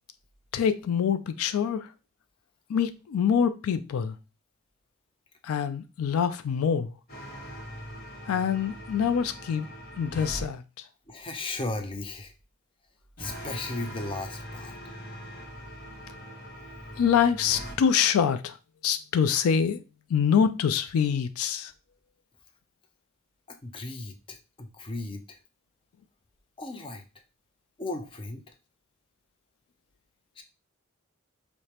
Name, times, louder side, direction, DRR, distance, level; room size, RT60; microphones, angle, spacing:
voice 1, 0.5-1.9 2.7-4.2 5.4-6.9 8.3-9.7 9.9-10.8 17.0-18.6 18.8-19.8 20.1-21.7, left 7 dB, 90° left, 0.3 m, -25 dB
sound 1, 7.1-10.5 13.2-17.8, equal, 45° left, 1.1 m, -41 dB
voice 2, 11.1-12.3 13.2-14.7 23.5-25.4 26.6-27.0 27.8-28.4 30.4-30.5, left 2 dB, 25° left, 0.5 m, -36 dB
4.8 x 2.1 x 2.8 m
head